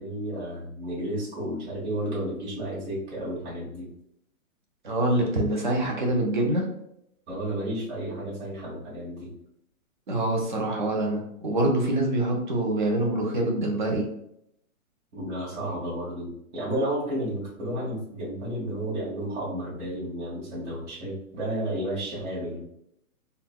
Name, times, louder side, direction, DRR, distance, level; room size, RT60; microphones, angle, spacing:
voice 1, 0.0-3.9 7.3-9.3 15.1-22.6, right 1 dB, 50° right, -8 dB, 1.4 m, -32 dB
voice 2, 4.8-6.7 10.1-14.0, right 1 dB, 35° right, 0 dB, 0.5 m, -25 dB
3.9 x 2.1 x 2.2 m, 0.76 s
hypercardioid pair, 165°, 43 cm